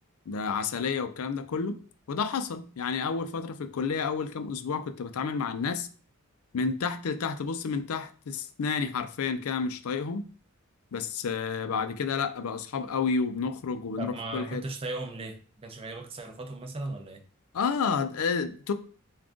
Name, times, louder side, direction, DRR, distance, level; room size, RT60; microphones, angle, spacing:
voice 1, 0.3-1.8 2.1-5.9 6.5-10.2 10.9-14.6 17.5-18.7, left 5 dB, 80° left, 0.4 m, -30 dB
voice 2, 14.0-17.2, right 2 dB, 25° right, 0.5 m, -37 dB
3.7 x 2.3 x 3.6 m
head